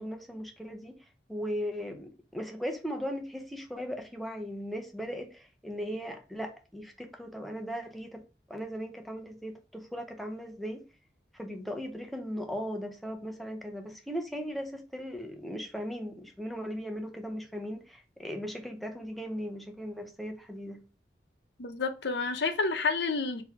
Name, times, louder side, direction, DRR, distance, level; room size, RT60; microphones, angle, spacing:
voice 1, 0.0-8.2 8.5-10.8 11.3-20.8, equal, ahead, 0.6 m, -38 dB
voice 2, 21.6-23.4, left 4 dB, 80° left, 0.7 m, -29 dB
3.9 x 2.9 x 4.7 m
head